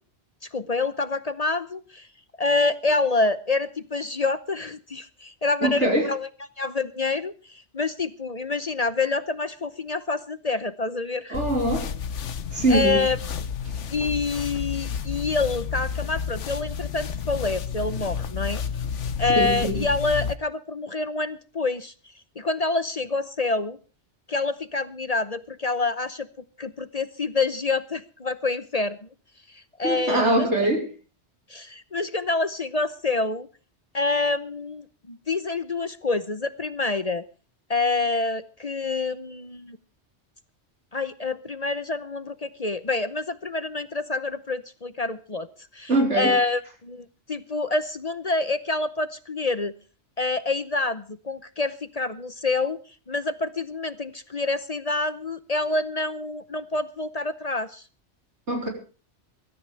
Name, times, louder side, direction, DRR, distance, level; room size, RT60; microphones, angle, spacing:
voice 1, 0.5-2.1 2.4-6.3 6.6-11.4 12.7-13.2 13.9-18.6 19.2-21.9 22.4-23.8 24.3-26.3 26.6-29.0 29.5-30.5 31.5-33.5 33.9-37.2 37.7-39.8 40.9-45.5 45.7-49.7 50.2-52.8 53.1-57.8, left 3 dB, 35° left, 0.8 m, -27 dB
voice 2, 5.6-6.1 11.3-11.9 12.5-13.0 13.7-14.1 19.4-19.8 29.8-30.9 45.9-46.4 58.5-58.7, right 1 dB, 75° right, 4.7 m, -23 dB
sound 1, 11.3-20.3, left 7 dB, 90° left, 1.2 m, -31 dB
23.5 x 13.5 x 3.3 m
omnidirectional pair, 1.2 m